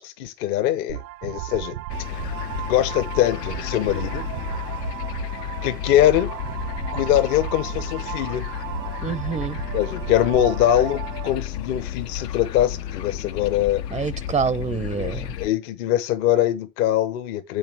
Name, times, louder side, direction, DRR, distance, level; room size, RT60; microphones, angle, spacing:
voice 1, 0.0-1.7 2.6-4.2 5.6-6.3 6.9-8.5 9.7-13.8 15.0-17.6, left 12 dB, 65° left, 1.1 m, -22 dB
sound 1, 0.9-11.3, right 15 dB, 80° right, 0.7 m, -35 dB
sound 2, 1.9-15.5, left 10 dB, 85° left, 0.8 m, -32 dB
voice 2, 9.0-9.6 13.9-15.3, right 5 dB, 10° right, 0.4 m, -26 dB
8.0 x 4.4 x 5.4 m
hypercardioid pair, 80°, 48 cm